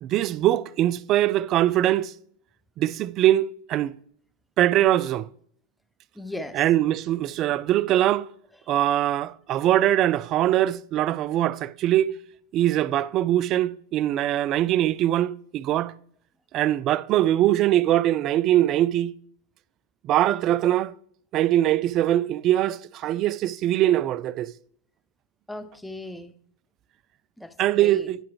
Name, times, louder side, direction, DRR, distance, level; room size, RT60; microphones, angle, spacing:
voice 1, 0.0-2.1 2.8-3.9 4.6-5.3 6.5-8.3 8.7-12.2 12.5-15.9 16.5-19.1 20.1-20.9 21.3-24.5 27.6-28.2, right 13 dB, 40° right, 0.3 m, -22 dB
voice 2, 6.2-6.6 25.5-26.3 27.4-28.1, left 1 dB, 5° left, 0.7 m, -37 dB
10.5 x 5.9 x 3.0 m
hypercardioid pair, 105°, 0 cm